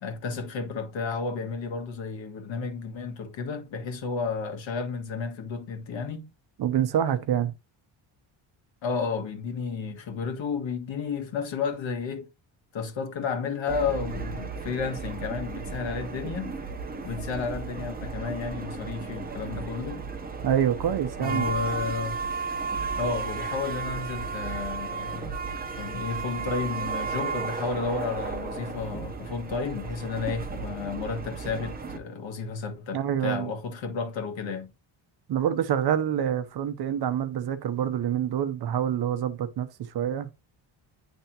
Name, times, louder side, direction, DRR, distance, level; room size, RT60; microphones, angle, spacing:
voice 1, 0.0-6.3 8.8-12.3 12.7-16.5 17.0-20.0 21.2-22.2 23.0-25.4 25.8-34.7, left 5 dB, 70° left, 1.6 m, -32 dB
voice 2, 6.6-7.5 20.4-21.5 32.9-33.5 35.3-39.7 39.9-40.3, right 9 dB, 55° right, 0.7 m, -26 dB
sound 1, 13.7-32.0, right 4 dB, 20° right, 0.7 m, -34 dB
10.0 x 3.5 x 2.8 m
cardioid pair, 175°, 47 cm